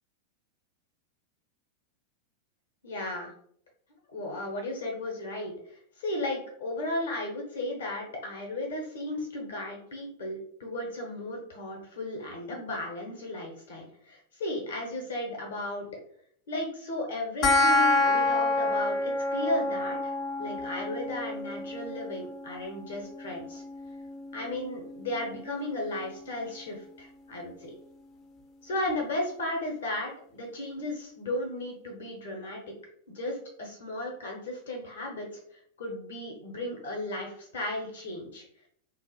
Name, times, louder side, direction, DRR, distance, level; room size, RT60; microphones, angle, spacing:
voice 1, 2.8-3.3 4.1-15.9 16.5-20.1 20.4-23.6 24.3-27.7 28.6-32.6 33.1-38.4, left 1 dB, 60° left, 0 dB, 0.8 m, -35 dB
sound 1, 17.4-28.4, left 2 dB, 30° left, 0.4 m, -30 dB
3.3 x 2.3 x 3.0 m, 0.65 s
figure-of-eight pair, 90°, 0 cm